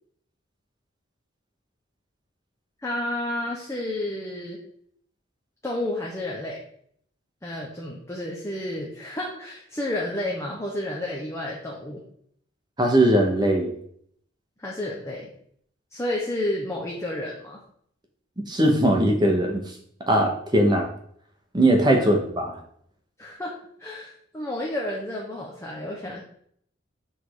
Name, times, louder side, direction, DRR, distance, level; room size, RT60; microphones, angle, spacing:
voice 1, 2.8-4.6 5.6-6.6 7.4-12.0 14.6-15.3 15.9-17.6 22.0-22.1 23.2-26.2, left 1 dB, 15° left, -3 dB, 0.8 m, -31 dB
voice 2, 12.8-13.7 18.5-19.6 20.1-20.9 21.5-22.5, right 1 dB, 20° right, 2 dB, 1.0 m, -20 dB
6.3 x 3.6 x 4.7 m, 0.66 s
head